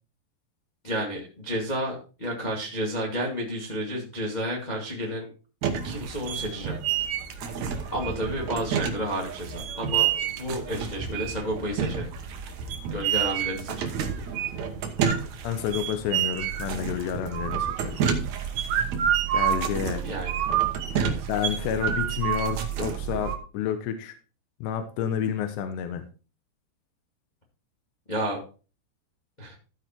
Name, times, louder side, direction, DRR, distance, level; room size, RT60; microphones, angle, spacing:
voice 1, 0.8-5.3 5.8-6.8 7.0-7.1 7.9-12.1 12.9-13.9 20.0-20.3 21.0-21.3 28.1-28.4 29.4-29.5, equal, 25° left, -2 dB, 0.8 m, -31 dB
sound 1, 5.6-23.4, right 8 dB, 85° right, 1.6 m, -28 dB
voice 2, 15.4-17.7 19.3-20.0 21.3-24.2 24.6-26.0, left 9 dB, 75° left, 8 dB, 3.0 m, -29 dB
14.5 x 4.9 x 4.5 m, 0.35 s
omnidirectional pair, 5.2 m